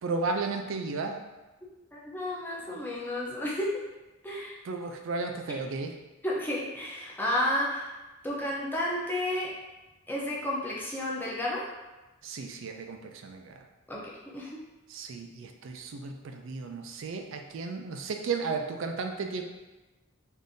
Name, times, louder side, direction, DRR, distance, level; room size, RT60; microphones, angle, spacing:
voice 1, 0.0-1.2 2.7-2.8 4.7-5.9 12.2-13.6 14.9-19.4, right 4 dB, 70° right, 5 dB, 0.4 m, -34 dB
voice 2, 1.9-3.8 4.2-4.6 6.2-7.9 8.2-9.5 10.1-11.7 13.9-14.6, left 1 dB, 10° left, -4 dB, 0.5 m, -32 dB
3.5 x 2.5 x 2.6 m, 1.1 s
head